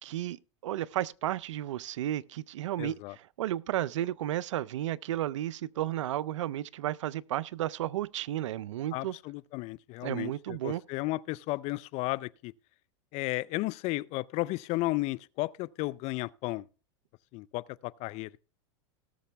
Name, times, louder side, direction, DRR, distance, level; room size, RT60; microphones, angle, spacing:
voice 1, 0.0-9.2 10.0-10.8, right 13 dB, 85° right, 0.4 m, -33 dB
voice 2, 2.8-3.2 8.9-12.5 13.1-16.7 17.3-18.4, left 20 dB, 45° left, 0.4 m, -34 dB
17.5 x 6.8 x 3.3 m
hypercardioid pair, 115°, 15 cm